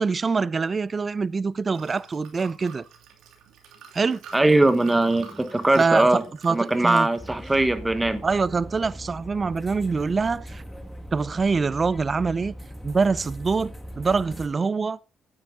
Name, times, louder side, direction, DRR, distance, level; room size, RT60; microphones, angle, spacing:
voice 1, 0.0-2.9 3.9-4.2 5.8-6.1 6.4-7.1 8.2-10.6 11.1-12.5 12.8-15.0, right 4 dB, 35° right, 0.5 m, -24 dB
Liquid, 0.7-11.2, right 7 dB, 85° right, 2.8 m, -50 dB
voice 2, 4.3-6.2 6.5-8.2, right 2 dB, 15° right, 1.2 m, -20 dB
sound 1, 7.2-14.5, equal, 10° left, 1.9 m, -40 dB
9.6 x 9.4 x 3.7 m
cardioid pair, 90°, 0 cm